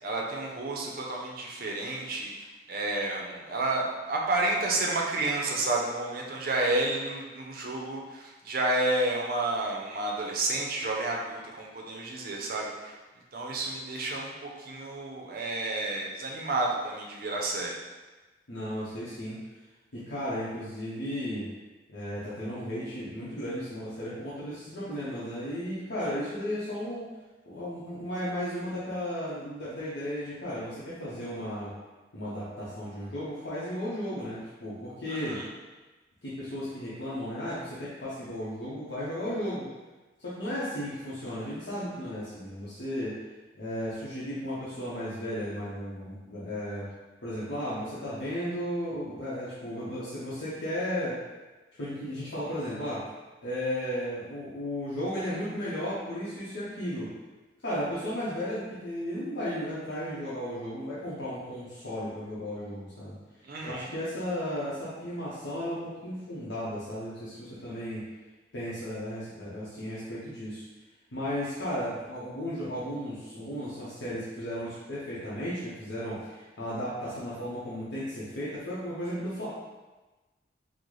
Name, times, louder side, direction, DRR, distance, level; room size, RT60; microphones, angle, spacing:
voice 1, 0.0-2.3 2.7-13.0 13.3-17.8 35.1-35.5 63.4-63.9, right 2 dB, 50° right, -1 dB, 0.5 m, -30 dB
voice 2, 18.5-19.4 19.9-21.5 21.9-27.1 27.5-31.7 32.1-35.4 36.2-39.7 40.2-43.2 43.5-46.9 47.2-51.2 51.8-53.0 53.4-57.1 57.6-63.2 63.6-68.1 68.5-70.6 71.1-79.5, equal, 75° left, -9 dB, 0.7 m, -34 dB
3.8 x 2.0 x 3.1 m, 1.2 s
head